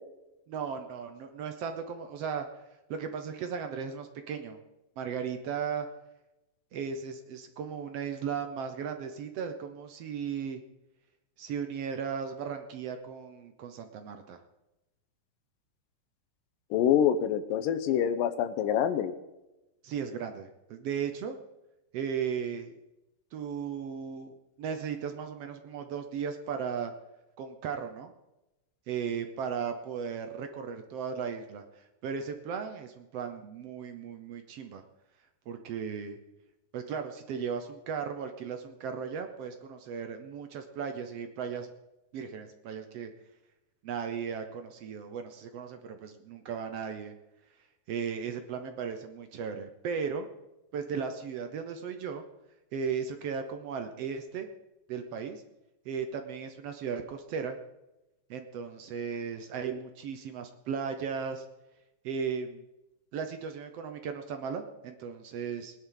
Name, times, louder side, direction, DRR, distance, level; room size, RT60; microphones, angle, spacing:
voice 1, 0.5-2.5 2.9-4.6 5.0-5.9 6.7-10.6 11.4-14.4 19.8-21.4 21.9-22.7 23.3-26.9 27.4-28.1 28.9-34.8 35.5-36.2 36.7-41.7 42.1-43.1 43.8-47.1 47.9-50.3 50.7-52.2 52.7-54.5 54.9-55.4 55.8-57.6 58.3-61.4 62.0-62.6 63.1-65.7, right 6 dB, 70° right, 7 dB, 1.5 m, -36 dB
voice 2, 16.7-19.1, left 9 dB, 85° left, 10 dB, 2.5 m, -26 dB
19.5 x 11.0 x 3.9 m, 0.97 s
omnidirectional pair, 3.8 m